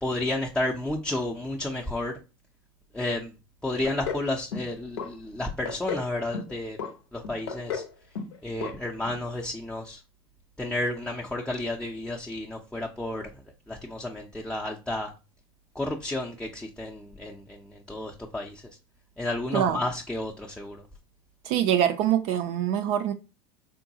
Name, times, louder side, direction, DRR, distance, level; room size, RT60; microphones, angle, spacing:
voice 1, 0.0-2.2 2.9-3.3 3.6-6.8 7.1-7.8 8.4-10.0 10.6-13.3 13.7-15.1 15.8-17.6 17.9-18.6 19.2-20.8, left 1 dB, 5° left, 0.5 m, -31 dB
sound 1, 3.8-4.3 4.5-5.1 5.4-6.1 6.3-6.9 7.2-8.4 8.6-8.7 9.1-9.2, left 6 dB, 75° left, 0.6 m, -33 dB
voice 2, 19.5-19.8 21.4-23.1, right 10 dB, 55° right, 0.4 m, -24 dB
3.7 x 2.2 x 2.7 m
hypercardioid pair, 80°, 14 cm